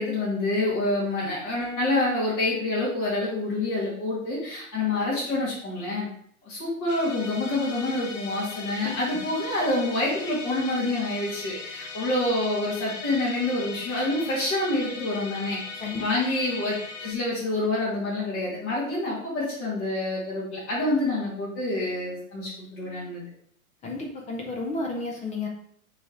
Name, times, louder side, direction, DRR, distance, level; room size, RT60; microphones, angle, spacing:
voice 1, 0.0-6.1 6.4-15.6 16.0-23.2, left 2 dB, 35° left, -7 dB, 2.5 m, -27 dB
Musical instrument, 6.9-17.1, left 4 dB, 60° left, 1.0 m, -39 dB
voice 2, 8.8-9.2 15.8-16.1 23.8-25.5, left 3 dB, 15° left, 0 dB, 0.8 m, -32 dB
8.7 x 3.6 x 3.1 m, 0.62 s
figure-of-eight pair, 105°, 43 cm